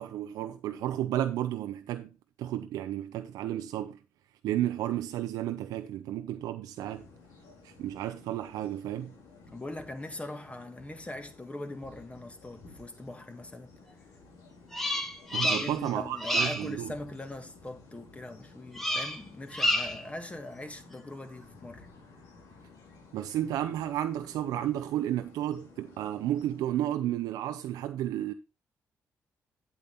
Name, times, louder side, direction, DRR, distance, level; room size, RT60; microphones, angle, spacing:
voice 1, 0.0-2.1 2.4-4.0 4.4-7.1 7.6-9.1 15.3-16.9 23.1-28.3, right 12 dB, 85° right, 0.6 m, -32 dB
sound 1, 6.8-26.6, left 3 dB, 85° left, 3.3 m, -54 dB
voice 2, 9.5-13.8 15.3-21.9, left 1 dB, 20° left, 2.2 m, -41 dB
Bird vocalization bird call bird song, 14.7-15.9 16.2-16.7 18.7-19.2 19.5-20.1, equal, 5° left, 2.1 m, -29 dB
8.6 x 8.3 x 4.1 m
supercardioid pair, 60°, 6 cm